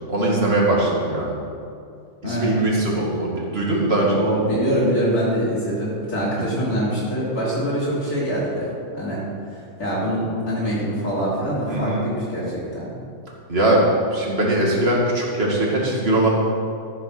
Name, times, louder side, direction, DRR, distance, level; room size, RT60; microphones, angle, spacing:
voice 1, 0.1-1.4 2.2-4.2 6.4-6.5 11.7-12.1 13.5-16.4, right 1 dB, 40° right, -3 dB, 2.5 m, -21 dB
voice 2, 2.2-2.6 4.1-9.2 9.5-12.9, equal, 75° left, -8 dB, 3.3 m, -24 dB
13.5 x 7.3 x 6.2 m, 2.4 s
omnidirectional pair, 1.6 m